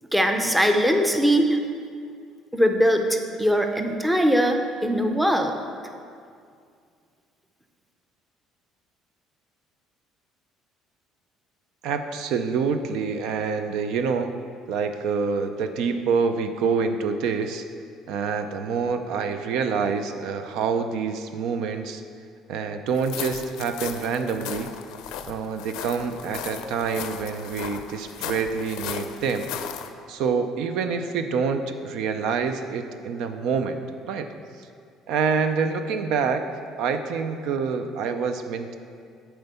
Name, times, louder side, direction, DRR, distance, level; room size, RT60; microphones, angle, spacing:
voice 1, 0.1-1.6 2.5-5.5, equal, 5° right, 4 dB, 0.6 m, -21 dB
voice 2, 11.8-14.3 14.7-17.6 18.1-22.0 22.5-24.7 25.3-29.5 30.1-33.8 34.1-34.3 34.6-34.7 35.1-36.4 36.8-38.8, right 5 dB, 70° right, 8 dB, 0.5 m, -26 dB
sound 1, 23.0-29.9, left 9 dB, 80° left, 0.5 m, -36 dB
7.8 x 4.4 x 6.8 m, 2.2 s
cardioid pair, 130°, 0 cm